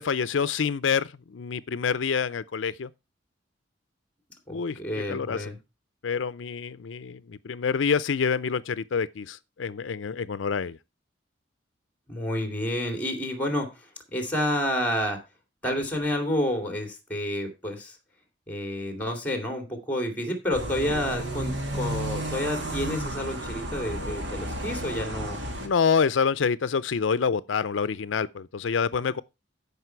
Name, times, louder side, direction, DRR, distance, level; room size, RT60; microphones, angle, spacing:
voice 1, 0.0-2.9 4.5-4.8 5.1-5.5 6.0-10.8 25.6-29.2, left 6 dB, 85° left, 0.5 m, -27 dB
voice 2, 4.5-5.6 12.1-13.9 14.1-15.2 15.6-18.0 18.5-25.4, left 1 dB, 10° left, 2.6 m, -29 dB
sound 1, 20.5-25.7, right 1 dB, 75° right, 2.3 m, -32 dB
14.0 x 5.5 x 4.5 m
head